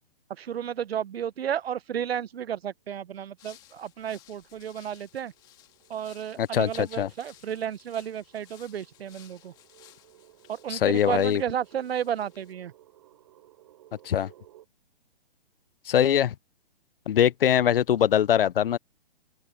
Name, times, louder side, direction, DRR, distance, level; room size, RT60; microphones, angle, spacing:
voice 1, 0.3-5.3 5.9-9.5 10.5-12.7, right 9 dB, 80° right, 0.9 m, -32 dB
sound 1, 3.4-12.5, left 13 dB, 15° left, 2.1 m, -57 dB
sound 2, 4.2-14.6, right 14 dB, 35° right, 4.8 m, -58 dB
voice 2, 6.4-7.1 10.7-11.4 14.0-14.3 15.9-16.3 17.1-18.8, left 10 dB, 65° left, 0.6 m, -22 dB
hypercardioid pair, 170°, 30 cm